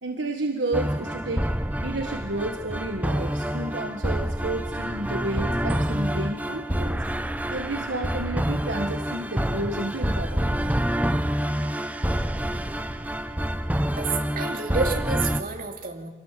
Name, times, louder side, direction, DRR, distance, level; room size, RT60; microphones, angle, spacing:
voice 1, 0.0-1.5 1.8-7.0 7.5-10.6, right 2 dB, 65° right, 3 dB, 1.5 m, -31 dB
sound 1, 0.7-15.4, equal, 10° right, 0.8 m, -27 dB
voice 2, 14.0-16.1, right 4 dB, 45° right, 2 dB, 2.8 m, -29 dB
25.5 x 18.0 x 7.6 m, 1.3 s
head